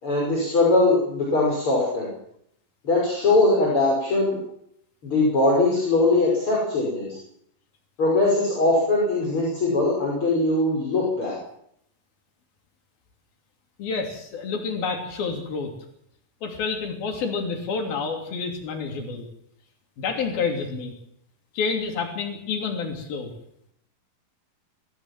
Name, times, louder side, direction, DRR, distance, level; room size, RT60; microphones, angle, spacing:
voice 1, 0.0-2.1 2.8-4.4 5.0-7.2 8.0-11.4, left 2 dB, 35° left, -3 dB, 6.4 m, -21 dB
voice 2, 13.8-15.7 16.4-19.3 20.0-20.9 21.5-23.3, left 5 dB, 90° left, 3 dB, 4.9 m, -28 dB
24.5 x 15.5 x 7.4 m, 0.71 s
omnidirectional pair, 4.1 m